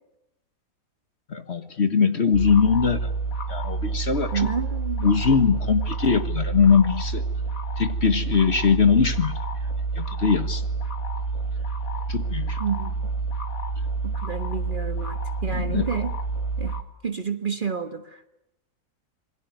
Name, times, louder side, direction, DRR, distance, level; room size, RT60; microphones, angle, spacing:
voice 1, 1.3-3.1 3.5-4.5 5.0-7.2 7.8-9.3 10.0-10.6 12.1-12.6 15.5-15.8, left 5 dB, 45° left, 10 dB, 1.6 m, -21 dB
sound 1, 2.3-16.8, right 3 dB, 60° left, 2.5 m, -29 dB
voice 2, 4.3-5.1 12.6-13.0 14.0-16.1 16.6-16.7 17.0-18.3, right 6 dB, 35° right, 9 dB, 1.5 m, -29 dB
27.5 x 21.0 x 9.3 m, 0.86 s
omnidirectional pair, 1.6 m